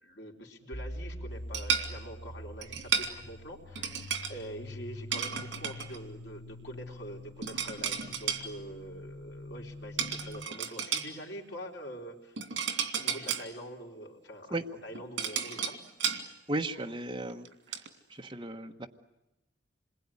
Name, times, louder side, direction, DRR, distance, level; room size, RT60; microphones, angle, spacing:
voice 1, 0.0-12.5 12.9-15.8, right 1 dB, 70° left, 0 dB, 3.6 m, -45 dB
sound 1, 0.7-10.5, left 1 dB, 50° left, 1.2 m, -45 dB
sound 2, 1.5-1.9 2.6-3.1 3.7-4.3 5.1-6.0 7.4-8.4 10.0-11.1 12.4-13.4 14.7-16.2 16.8-16.9 17.3-17.9, right 7 dB, 80° right, 2.5 m, -33 dB
voice 2, 16.5-17.8 18.1-18.9, right 2 dB, 25° right, 3 dB, 1.3 m, -35 dB
27.0 x 21.5 x 9.8 m, 0.96 s
head